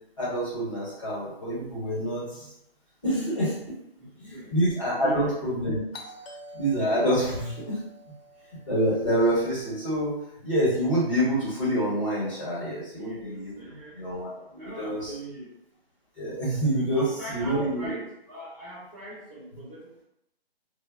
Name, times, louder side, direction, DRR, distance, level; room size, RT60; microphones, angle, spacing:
voice 1, 0.2-2.5 3.0-3.5 4.2-5.8 6.5-7.8 8.7-13.5 13.9-15.1 16.2-17.9, right 1 dB, 30° left, -8 dB, 1.1 m, -27 dB
voice 2, 4.0-4.6 4.9-5.3 13.0-14.0 14.6-15.5 16.9-20.0, right 2 dB, 15° right, -16 dB, 0.7 m, -40 dB
Doorbell, 5.9-10.5, equal, 70° left, 0.7 m, -48 dB
2.1 x 2.0 x 3.5 m, 0.79 s
hypercardioid pair, 175°, 31 cm